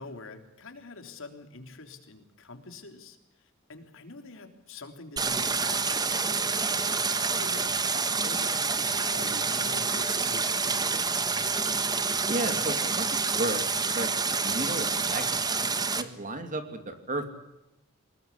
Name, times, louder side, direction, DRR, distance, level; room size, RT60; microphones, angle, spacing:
voice 1, 0.0-6.5 7.1-10.8, left 3 dB, 65° left, 6 dB, 3.5 m, -45 dB
Stream, 5.2-16.0, right 4 dB, 20° right, 1.5 m, -28 dB
voice 2, 12.3-13.6 13.9-14.1 14.4-15.7 16.0-17.3, right 2 dB, 40° right, 7 dB, 2.9 m, -33 dB
24.0 x 21.0 x 8.4 m, 0.92 s
head